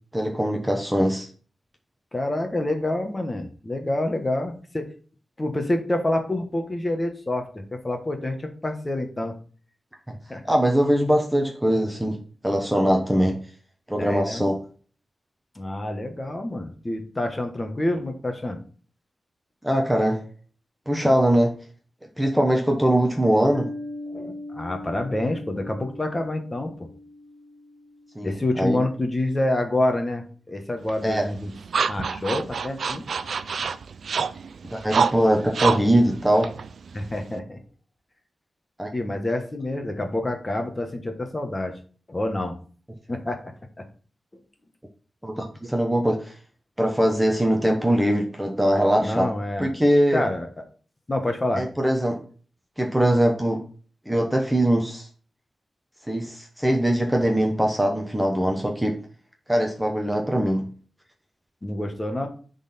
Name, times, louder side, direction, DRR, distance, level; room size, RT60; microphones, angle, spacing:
voice 1, 0.1-1.3 10.4-13.4 13.9-14.6 19.6-20.2 20.9-21.6 22.2-23.7 28.2-28.8 31.0-31.2 34.7-36.6 38.8-39.1 45.2-46.3 46.8-49.3 49.6-50.2 51.6-52.2 52.8-53.6 54.1-55.1 56.1-59.0 59.5-60.7, equal, 5° right, 2 dB, 0.9 m, -22 dB
voice 2, 2.1-4.9 5.4-9.3 10.3-10.4 14.0-14.4 15.5-18.6 24.1-26.9 28.2-31.5 31.9-33.0 36.9-37.6 38.9-41.7 42.1-42.5 43.1-43.5 49.0-49.7 50.1-50.5 51.1-51.7 61.6-62.3, left 1 dB, 20° left, 5 dB, 1.3 m, -27 dB
Piano, 23.5-28.9, left 1 dB, 85° left, 1.4 m, -40 dB
sound 1, 30.9-37.4, right 5 dB, 70° right, 0.4 m, -28 dB
10.0 x 4.1 x 4.2 m, 0.40 s
wide cardioid pair, 155°, 0 cm